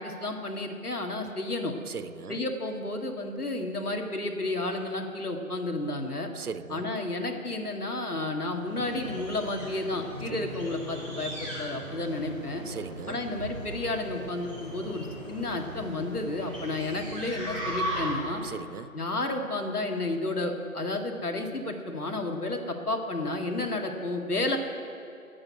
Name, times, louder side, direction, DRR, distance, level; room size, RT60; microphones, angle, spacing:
voice 1, 0.0-1.7 2.3-6.3 6.7-12.6 13.1-18.4 18.9-24.6, left 2 dB, 85° left, 3 dB, 2.1 m, -31 dB
voice 2, 1.9-2.4 6.3-6.9 10.3-10.5 12.7-13.2 18.4-18.9, right 6 dB, 85° right, 15 dB, 0.7 m, -38 dB
sound 1, 8.6-18.4, right 1 dB, 20° right, 2.8 m, -38 dB
10.5 x 8.8 x 9.4 m, 2.6 s
figure-of-eight pair, 175°, 44 cm